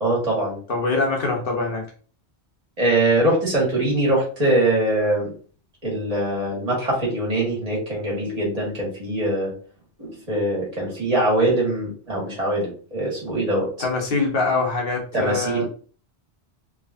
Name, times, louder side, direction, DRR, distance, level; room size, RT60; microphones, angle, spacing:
voice 1, 0.0-0.6 2.8-5.3 5.8-9.5 10.0-13.7 15.1-15.6, right 1 dB, 35° right, -5 dB, 1.7 m, -22 dB
voice 2, 0.7-1.9 13.8-15.6, left 3 dB, 60° left, 1 dB, 1.1 m, -23 dB
3.4 x 3.0 x 2.5 m, 0.41 s
omnidirectional pair, 1.1 m